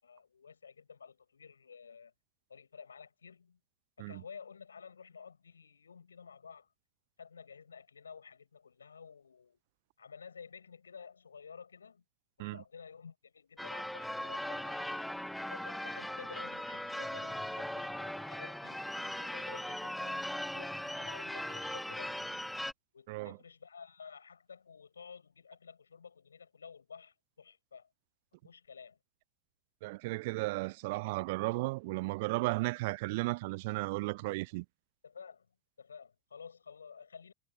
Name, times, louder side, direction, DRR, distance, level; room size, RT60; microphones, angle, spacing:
voice 1, 0.0-2.1 2.5-3.6 4.0-6.7 7.2-9.6 10.0-12.0 12.4-15.1 15.5-18.9 19.2-22.2 22.9-27.9 28.4-29.0 35.0-35.5 35.8-37.3, left 6 dB, 70° left, 6.8 m, -52 dB
Church bell / Car / Alarm, 13.6-22.7, left 1 dB, ahead, 2.0 m, -39 dB
voice 2, 29.8-34.6, right 23 dB, 50° right, 0.4 m, -34 dB
figure-of-eight pair, 90°, 0 cm